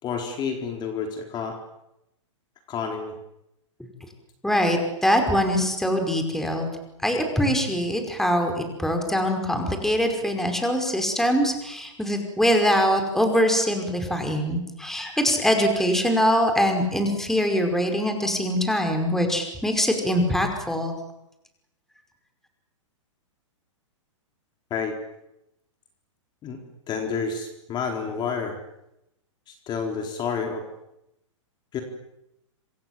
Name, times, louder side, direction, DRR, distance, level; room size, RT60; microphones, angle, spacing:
voice 1, 0.0-1.6 2.7-3.1 24.7-24.9 26.4-26.6 26.9-28.6 29.5-30.6 31.7-31.8, left 6 dB, 25° left, 3 dB, 4.2 m, -29 dB
voice 2, 4.4-6.7 7.0-20.9, equal, ahead, 4 dB, 5.3 m, -23 dB
27.5 x 26.0 x 7.6 m, 0.86 s
hypercardioid pair, 125°, 16 cm